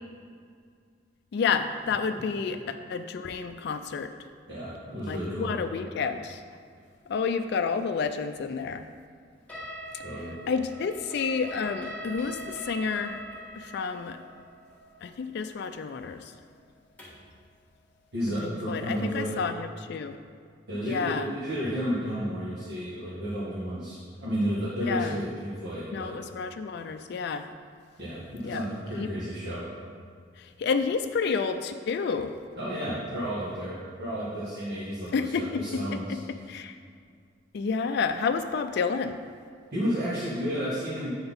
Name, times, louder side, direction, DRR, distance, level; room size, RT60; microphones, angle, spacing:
voice 1, 1.3-4.1 5.1-6.4 7.1-8.9 10.5-13.2 13.5-14.2 15.0-16.3 18.4-20.2 20.8-21.3 24.8-25.2 25.9-27.5 28.4-28.6 29.0-29.1 30.4-32.4 35.1-36.8 37.5-39.2, left 5 dB, 60° left, 7 dB, 0.3 m, -30 dB
voice 2, 4.5-5.6 10.0-10.4 18.1-19.4 20.7-26.1 28.0-29.8 32.6-35.1 35.4-36.2 39.7-41.1, equal, 60° right, -8 dB, 1.3 m, -32 dB
sound 1, 9.5-17.3, equal, 10° left, 1.3 m, -42 dB
7.7 x 4.0 x 5.4 m, 2.2 s
head